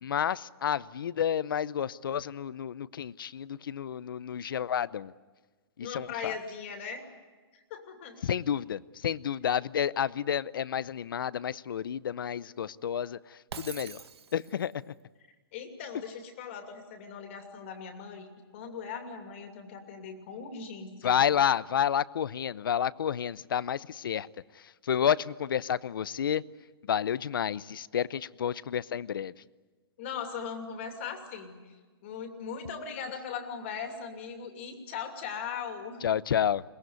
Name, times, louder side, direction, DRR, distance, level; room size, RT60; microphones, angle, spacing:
voice 1, 0.0-5.1 5.8-6.4 8.2-14.0 14.3-14.9 21.0-24.3 24.5-26.4 26.9-29.3 36.0-36.6, left 9 dB, 60° left, 0.7 m, -30 dB
voice 2, 5.8-7.0 7.5-8.2 15.5-21.2 30.0-31.8 32.0-36.0, left 6 dB, 30° left, 2.6 m, -39 dB
Shatter, 13.5-14.7, right 7 dB, 85° right, 1.8 m, -44 dB
22.5 x 20.5 x 9.5 m
hypercardioid pair, 175°, 13 cm